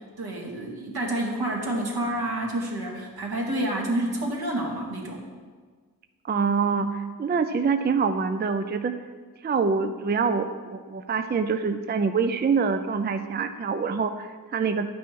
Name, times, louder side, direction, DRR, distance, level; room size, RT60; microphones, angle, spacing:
voice 1, 0.2-5.3, right 1 dB, 75° right, -1 dB, 2.4 m, -29 dB
voice 2, 6.2-8.9 9.4-14.9, right 5 dB, 30° right, 9 dB, 0.4 m, -25 dB
11.5 x 9.2 x 4.7 m, 1.5 s
wide cardioid pair, 165°, 38 cm